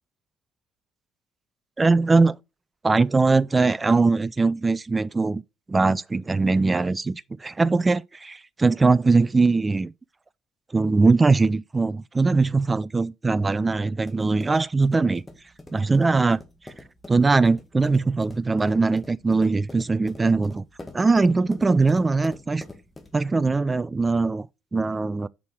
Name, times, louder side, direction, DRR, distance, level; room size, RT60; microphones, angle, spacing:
voice 1, 1.8-2.4 2.8-5.4 5.7-9.9 10.7-15.2 15.7-16.4 17.1-20.6 20.9-22.6 23.1-24.5 24.7-25.3, right 3 dB, 25° right, 0.3 m, -21 dB
sound 1, 13.6-23.3, left 2 dB, 20° left, 1.8 m, -45 dB
6.3 x 5.2 x 4.6 m
hypercardioid pair, 50°, 0 cm